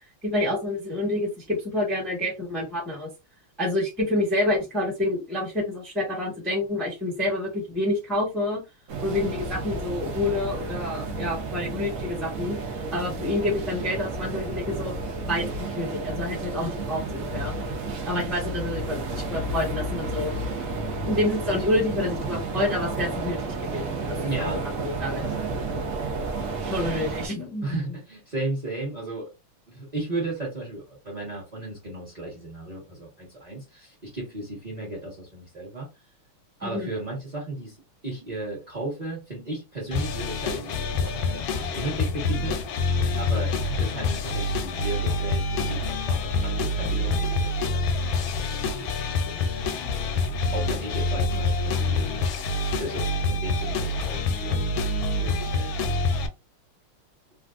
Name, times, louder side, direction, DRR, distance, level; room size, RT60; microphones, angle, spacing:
voice 1, 0.2-3.1 3.6-8.6 9.0-12.6 12.9-14.9 15.3-17.5 18.0-20.4 21.1-25.3 26.6-27.8 36.6-36.9, left 1 dB, ahead, -3 dB, 0.8 m, -28 dB
sound 1, 8.9-27.3, right 3 dB, 90° right, 0.7 m, -31 dB
voice 2, 24.2-24.6 27.6-29.3 29.7-35.9 36.6-37.8 38.0-42.6 43.2-49.5 50.5-52.3 52.8-54.7 55.2-55.9, right 2 dB, 30° right, -3 dB, 0.8 m, -35 dB
sound 2, 39.9-56.3, left 3 dB, 75° left, 1.3 m, -26 dB
3.3 x 2.5 x 2.4 m, 0.26 s
omnidirectional pair, 2.4 m